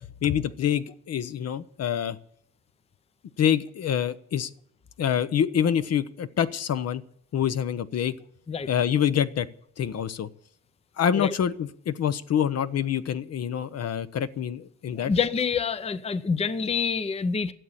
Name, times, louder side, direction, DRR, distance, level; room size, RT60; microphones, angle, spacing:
voice 1, 0.2-2.2 3.4-4.5 5.0-7.0 7.3-8.1 8.7-9.5 9.8-10.3 11.0-15.1, left 9 dB, 55° left, 0.8 m, -26 dB
voice 2, 15.0-17.5, left 5 dB, 20° left, 0.6 m, -27 dB
12.5 x 7.7 x 8.6 m
cardioid pair, 90°, 30 cm